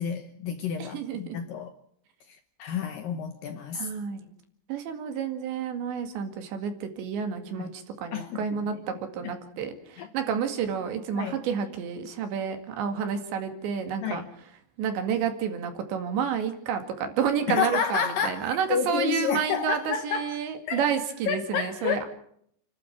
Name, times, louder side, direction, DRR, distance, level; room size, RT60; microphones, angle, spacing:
voice 1, 0.0-1.7 2.3-3.9 7.6-7.7 8.1-8.4 9.2-9.4 10.0-10.1 11.1-11.4 14.0-14.3 17.5-20.4 20.7-20.8 21.3-22.0, left 7 dB, 70° left, 2.2 m, -30 dB
voice 2, 0.8-1.4 3.7-4.3 4.7-14.2 14.8-22.1, right 7 dB, 80° right, 4.5 m, -30 dB
30.0 x 12.0 x 7.3 m
omnidirectional pair, 5.1 m